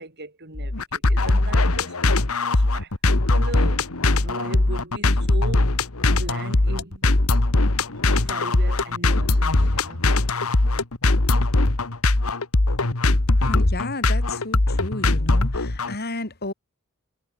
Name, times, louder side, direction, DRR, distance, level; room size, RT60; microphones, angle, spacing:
voice 1, 0.0-2.0 2.5-3.9 4.2-5.8 6.1-7.1 8.0-10.1, right 2 dB, 50° right, 6.1 m, -38 dB
sound 1, 0.6-15.9, left 2 dB, 85° left, 1.8 m, -20 dB
voice 2, 13.4-16.5, left 1 dB, 50° left, 4.4 m, -31 dB
head